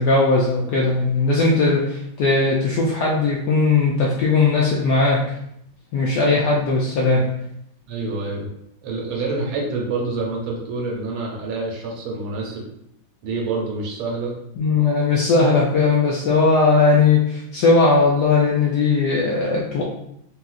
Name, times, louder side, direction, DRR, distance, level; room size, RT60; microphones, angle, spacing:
voice 1, 0.0-5.2 5.9-7.3 14.6-19.8, left 3 dB, 85° left, -4 dB, 0.9 m, -18 dB
voice 2, 7.9-8.5 8.8-12.6 13.2-14.3, right 3 dB, 80° right, -1 dB, 1.5 m, -27 dB
3.8 x 2.3 x 2.4 m, 0.75 s
omnidirectional pair, 2.3 m